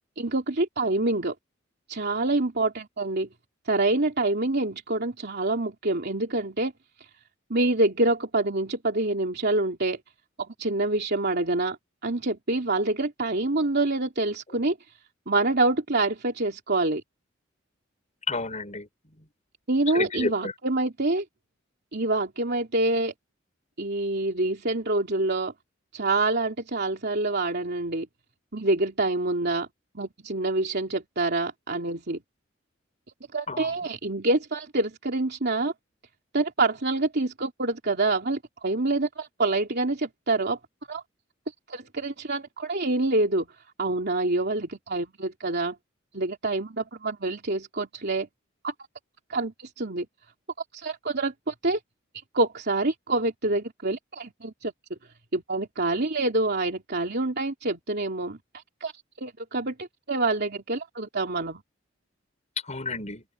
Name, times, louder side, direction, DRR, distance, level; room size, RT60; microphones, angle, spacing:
voice 1, 0.2-1.3 1.9-3.3 3.7-6.7 7.5-10.0 10.4-11.8 12.0-14.8 15.3-17.0 19.7-21.2 21.9-23.1 23.8-25.5 25.9-28.1 28.5-29.7 29.9-32.2 33.3-35.7 36.3-40.6 40.9-41.0 41.7-43.5 43.8-45.7 46.1-48.3 48.6-48.7 49.3-50.1 50.7-51.8 52.3-54.7 55.3-58.9 59.2-61.6, right 2 dB, 55° right, 3.1 m, -26 dB
voice 2, 18.3-18.9 19.9-20.5 33.5-33.8 62.7-63.2, left 3 dB, 35° left, 5.6 m, -31 dB
open air
head